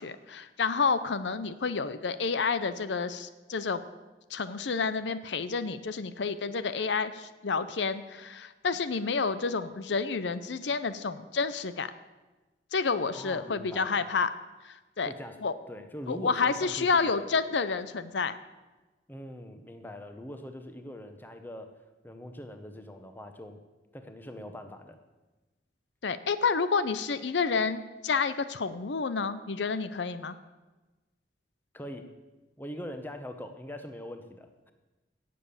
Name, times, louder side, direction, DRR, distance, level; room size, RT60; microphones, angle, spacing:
voice 1, 0.0-3.8 4.3-11.9 12.7-14.3 14.6-15.1 15.4-15.5 16.1-18.3 26.0-30.4, left 5 dB, 75° left, 13 dB, 0.6 m, -29 dB
voice 2, 13.1-14.0 15.0-15.4 15.7-17.3 19.1-21.7 22.0-23.6 23.9-25.0 31.7-32.1 32.6-34.7, left 1 dB, 10° left, 7 dB, 1.1 m, -42 dB
17.0 x 7.7 x 7.0 m, 1.2 s
head